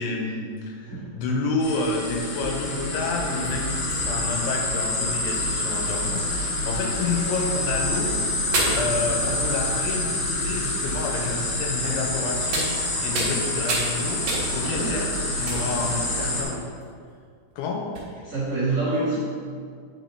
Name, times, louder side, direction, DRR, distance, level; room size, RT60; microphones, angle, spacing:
voice 1, 0.0-8.1 8.7-14.2 14.5-16.6 17.6-17.8, left 3 dB, 85° left, 1 dB, 3.0 m, -29 dB
sound 1, 1.6-16.4, left 1 dB, 65° left, 2.4 m, -27 dB
sound 2, 2.6-2.8 3.4-4.5 5.2-5.3 5.5-5.6 6.7-6.8 7.8-7.9 8.5-9.9 10.6-10.7 11.8-12.1 12.5-13.4 13.7-13.9 14.3-14.9 15.5-16.0 16.5-16.8 17.5-17.6 18.0-18.1, right 2 dB, 90° right, 1.5 m, -30 dB
voice 2, 14.7-15.0 15.6-16.4 18.2-19.2, right 3 dB, 75° right, -11 dB, 1.4 m, -28 dB
9.1 x 4.8 x 2.7 m, 2.1 s
omnidirectional pair, 5.5 m